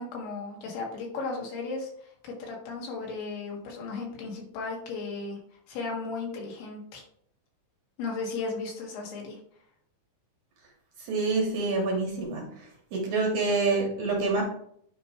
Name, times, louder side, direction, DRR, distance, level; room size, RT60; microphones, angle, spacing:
voice 1, 0.0-5.4 5.7-7.0 8.0-9.4, left 4 dB, 85° left, -1 dB, 3.7 m, -35 dB
voice 2, 11.0-12.4 12.9-14.4, right 3 dB, 60° right, -1 dB, 2.3 m, -26 dB
9.1 x 3.1 x 4.6 m, 0.66 s
omnidirectional pair, 4.5 m